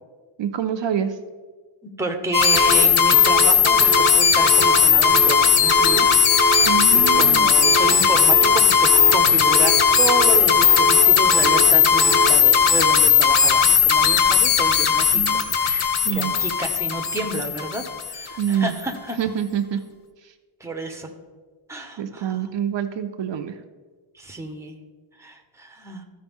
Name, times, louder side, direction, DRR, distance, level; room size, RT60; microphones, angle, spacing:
voice 1, 0.4-1.2 6.7-7.5 15.1-15.5 16.0-16.4 18.4-18.7 19.2-19.8 20.2-20.3 22.0-23.6, right 9 dB, 60° right, 7 dB, 0.6 m, -26 dB
voice 2, 1.8-19.2 20.6-21.1 21.7-22.4 24.2-24.7 25.2-26.0, right 2 dB, 5° right, 4 dB, 0.8 m, -30 dB
sound 1, 2.3-18.2, left 7 dB, 80° left, 0.9 m, -17 dB
sound 2, 2.5-12.4, right 4 dB, 40° left, 2.6 m, -27 dB
14.0 x 5.1 x 3.6 m, 1.4 s
wide cardioid pair, 145°, 50 cm